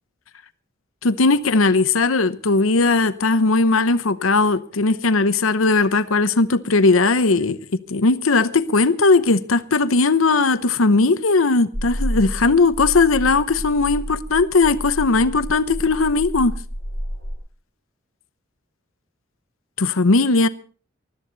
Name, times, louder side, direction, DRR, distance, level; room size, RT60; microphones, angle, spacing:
voice 1, 1.0-16.5 19.8-20.5, left 3 dB, 90° left, 0.9 m, -18 dB
sound 1, 11.7-17.4, equal, 40° left, 6.9 m, -30 dB
20.5 x 13.0 x 4.0 m
head